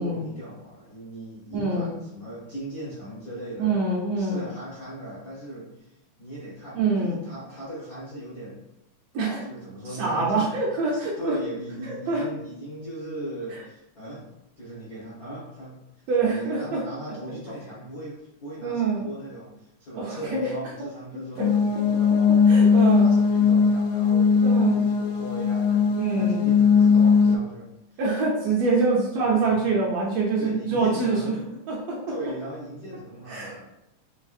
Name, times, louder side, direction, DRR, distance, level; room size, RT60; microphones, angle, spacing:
voice 1, 0.0-3.8 4.2-8.7 9.4-14.3 14.6-15.8 16.1-22.3 22.7-28.0 29.2-29.6 30.4-31.5 32.1-33.7, right 1 dB, 70° left, -8 dB, 0.8 m, -38 dB
voice 2, 1.5-1.9 3.6-4.4 6.7-7.2 9.1-9.4 10.0-11.4 11.8-12.2 16.1-16.8 18.6-19.0 20.0-20.5 21.4-21.5 22.5-23.1 24.4-24.8 26.0-26.4 28.0-32.1 33.3-33.7, right 3 dB, 75° right, -3 dB, 1.5 m, -25 dB
sound 1, 21.4-27.3, left 5 dB, 90° left, 1.3 m, -19 dB
5.3 x 3.2 x 2.4 m, 0.86 s
omnidirectional pair, 3.3 m